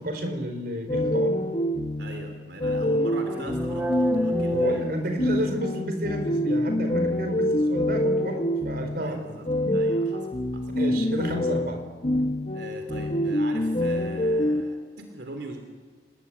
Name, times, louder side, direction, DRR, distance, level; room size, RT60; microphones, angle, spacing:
voice 1, 0.0-1.5 4.5-9.2 9.6-9.8 10.7-11.8, equal, 55° right, 6 dB, 4.6 m, -31 dB
sound 1, 0.9-14.6, left 1 dB, 35° left, 1.4 m, -26 dB
voice 2, 2.0-4.9 9.0-9.5 9.7-10.3 10.5-10.7 12.5-15.6, right 1 dB, 80° right, 5 dB, 3.2 m, -40 dB
sound 2, 3.3-5.9, equal, 10° right, 1.2 m, -30 dB
30.0 x 19.5 x 9.9 m, 1.5 s
head